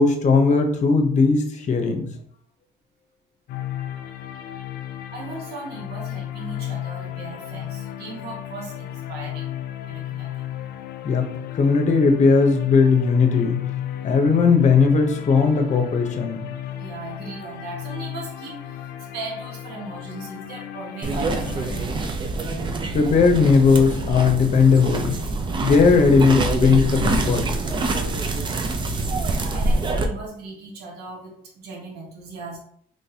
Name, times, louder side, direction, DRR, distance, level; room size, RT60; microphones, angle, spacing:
voice 1, 0.0-2.0 11.0-13.6 14.0-16.4 22.9-25.2 25.6-27.4, left 5 dB, 45° left, 4 dB, 0.8 m, -18 dB
sound 1, 3.5-21.9, left 12 dB, 65° left, 0.5 m, -34 dB
voice 2, 5.1-9.5 9.8-10.5 16.8-21.7 29.3-32.6, right 3 dB, 75° right, -1 dB, 1.3 m, -38 dB
sound 2, 21.0-30.1, right 3 dB, 30° right, 0.5 m, -25 dB
3.8 x 3.2 x 2.8 m, 0.63 s
cardioid pair, 110°, 17 cm